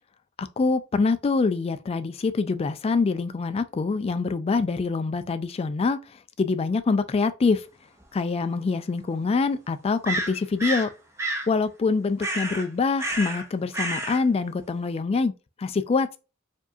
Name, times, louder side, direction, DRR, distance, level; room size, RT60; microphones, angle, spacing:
voice 1, 0.4-7.7 8.1-10.9 11.5-15.3 15.6-16.2, left 4 dB, 30° left, 0.3 m, -25 dB
sound 1, 8.0-8.1 10.0-10.9 11.2-11.5 12.2-12.7 13.0-13.4 13.7-14.2, right 1 dB, 15° right, 0.7 m, -29 dB
4.7 x 2.7 x 2.3 m
head